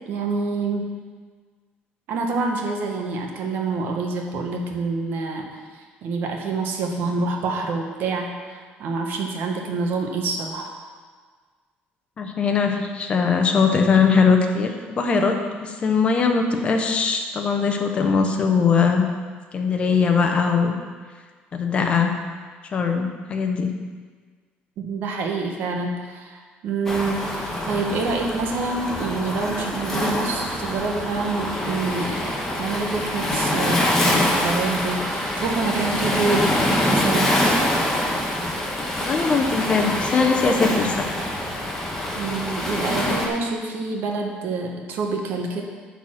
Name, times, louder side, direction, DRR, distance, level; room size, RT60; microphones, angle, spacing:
voice 1, 0.1-0.9 2.1-10.7 24.8-36.6 36.9-37.3 42.1-45.6, right 3 dB, 60° right, 2 dB, 1.2 m, -27 dB
voice 2, 12.2-15.3 15.6-19.1 19.5-20.8 21.5-22.1 22.7-23.7 39.0-41.1, left 5 dB, 30° left, 4 dB, 0.8 m, -20 dB
Waves surf, 26.9-43.3, left 1 dB, 10° left, 1.1 m, -25 dB
10.0 x 4.2 x 6.3 m, 1.5 s
cardioid pair, 165°, 4 cm